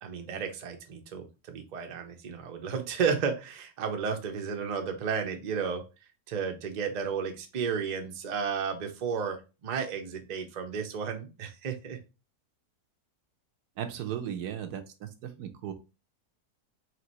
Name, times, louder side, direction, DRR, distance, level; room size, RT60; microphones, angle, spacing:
voice 1, 0.0-5.8 6.3-12.0, right 6 dB, 50° right, 5 dB, 0.5 m, -33 dB
voice 2, 13.8-15.7, right 9 dB, 90° right, 7 dB, 1.2 m, -36 dB
4.7 x 2.9 x 2.9 m, 0.30 s
omnidirectional pair, 1.7 m